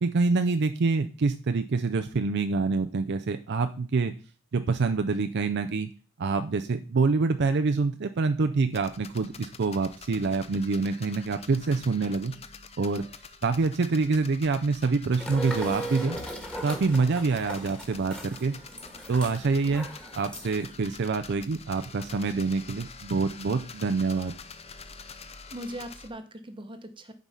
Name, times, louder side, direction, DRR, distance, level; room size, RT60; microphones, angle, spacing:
voice 1, 0.0-4.1 4.5-5.9 6.2-12.3 12.8-13.0 13.4-16.2 16.6-18.6 19.1-19.9 20.2-24.3, right 4 dB, 55° right, 8 dB, 0.5 m, -26 dB
sound 1, 8.7-26.1, left 5 dB, 30° left, 0.6 m, -46 dB
sound 2, 15.2-20.7, right 1 dB, 5° left, 1.5 m, -38 dB
voice 2, 25.3-27.1, right 1 dB, 25° right, 9 dB, 0.9 m, -40 dB
9.1 x 4.8 x 5.5 m, 0.38 s
head